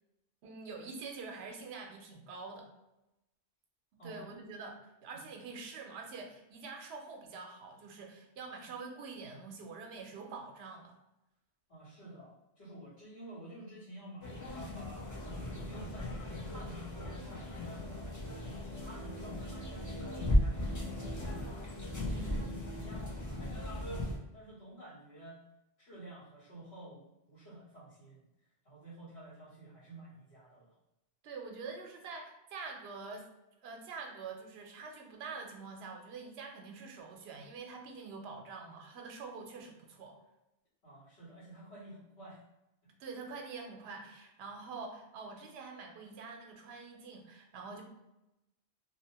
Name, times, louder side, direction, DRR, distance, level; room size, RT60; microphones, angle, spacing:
voice 1, 0.4-2.7 4.0-11.0 15.8-16.1 22.0-22.5 31.2-33.3 33.6-40.2 43.0-47.8, right 4 dB, 75° right, 2 dB, 0.8 m, -46 dB
voice 2, 4.0-4.4 5.1-5.2 11.7-15.1 15.5-18.0 18.5-21.7 22.1-25.4 25.8-28.3 28.6-30.7 40.8-42.4, right 1 dB, 75° left, -12 dB, 1.3 m, -51 dB
sound 1, 14.2-24.2, left 1 dB, 30° left, 0.4 m, -36 dB
2.7 x 2.0 x 2.8 m, 0.94 s
omnidirectional pair, 1.1 m